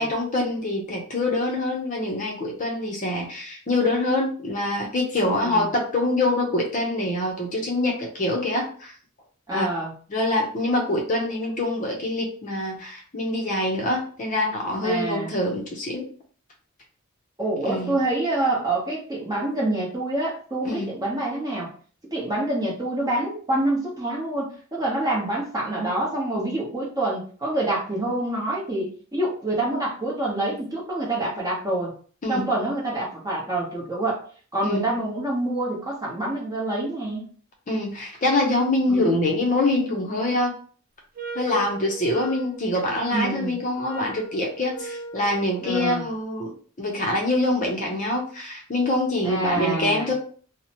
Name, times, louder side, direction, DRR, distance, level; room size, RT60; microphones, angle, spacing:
voice 1, 0.0-8.9 9.5-9.7 10.1-16.1 17.6-18.0 20.6-20.9 32.2-32.5 34.6-34.9 37.7-40.6 41.3-46.5 46.8-50.1, left 2 dB, 35° left, 0 dB, 0.5 m, -25 dB
voice 2, 5.4-5.7 9.5-9.9 14.8-15.3 17.4-21.7 22.1-31.9 32.3-34.2 34.5-37.3 38.9-39.1 43.1-43.6 45.6-46.1 49.2-50.1, right 2 dB, 15° right, -4 dB, 0.8 m, -26 dB
sound 1, 41.2-46.1, right 3 dB, 40° right, 0.5 m, -39 dB
2.7 x 2.0 x 2.8 m, 0.43 s
head